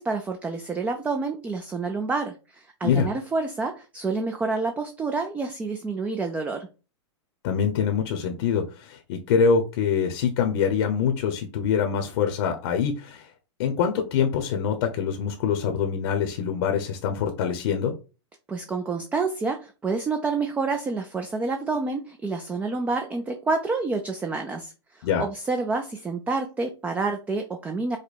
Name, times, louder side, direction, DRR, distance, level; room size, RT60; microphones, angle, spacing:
voice 1, 0.0-6.7 18.5-28.0, right 3 dB, 10° right, 5 dB, 0.4 m, -28 dB
voice 2, 7.4-13.3 13.6-17.9 25.0-25.2, left 6 dB, 55° left, 5 dB, 0.8 m, -24 dB
5.0 x 2.2 x 4.1 m, 0.32 s
hypercardioid pair, 140°, 15 cm